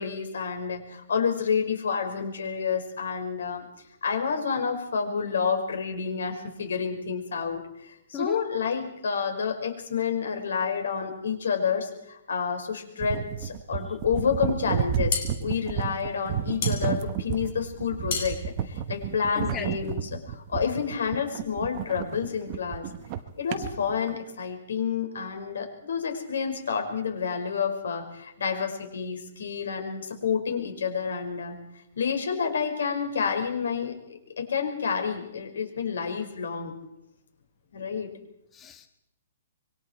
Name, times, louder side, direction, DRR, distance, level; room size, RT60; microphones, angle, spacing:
voice 1, 0.0-3.7 4.0-22.9 23.4-31.6 32.0-36.8 37.7-38.1, left 6 dB, 80° left, 5 dB, 5.5 m, -29 dB
sound 1, 13.0-24.1, right 9 dB, 25° right, 1.2 m, -31 dB
sound 2, 14.7-19.7, left 6 dB, 45° left, 5.3 m, -35 dB
voice 2, 19.3-19.9 38.5-38.9, left 7 dB, 15° left, 9 dB, 0.8 m, -36 dB
26.5 x 23.5 x 4.6 m, 0.84 s
hypercardioid pair, 170°, 0 cm